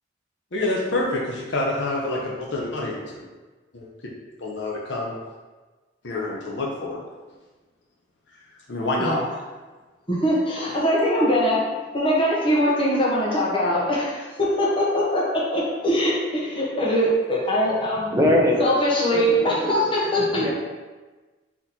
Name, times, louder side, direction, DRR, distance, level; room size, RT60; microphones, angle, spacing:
voice 1, 0.5-3.3 3.7-3.9 4.4-5.1 6.0-7.0 8.7-9.2, left 2 dB, 70° left, -2 dB, 0.7 m, -27 dB
voice 2, 10.1-11.6 11.9-18.1 18.6-20.4, equal, 30° left, -5 dB, 0.9 m, -22 dB
voice 3, 18.1-18.6 19.1-19.9 20.2-20.5, left 1 dB, 15° right, -2 dB, 0.6 m, -22 dB
4.2 x 2.9 x 4.0 m, 1.3 s
head